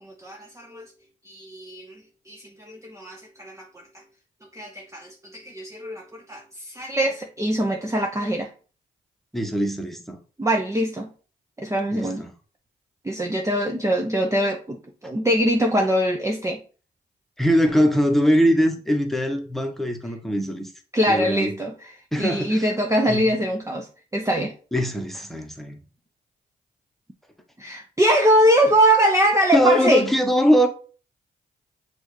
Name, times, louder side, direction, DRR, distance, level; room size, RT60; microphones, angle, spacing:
voice 1, 0.0-0.8 1.3-1.9 2.3-3.6 4.5-8.5 10.4-11.1 11.6-12.2 13.0-14.8 15.0-16.6 20.9-21.7 22.2-23.9 24.1-24.5 27.6-30.0, equal, 15° right, 0.7 m, -22 dB
voice 2, 9.3-10.2 11.9-12.3 17.4-20.7 21.1-21.5 22.1-22.7 23.1-23.4 24.7-25.8 29.5-30.7, equal, ahead, 1.1 m, -21 dB
6.1 x 2.6 x 3.2 m
supercardioid pair, 45°, 20 cm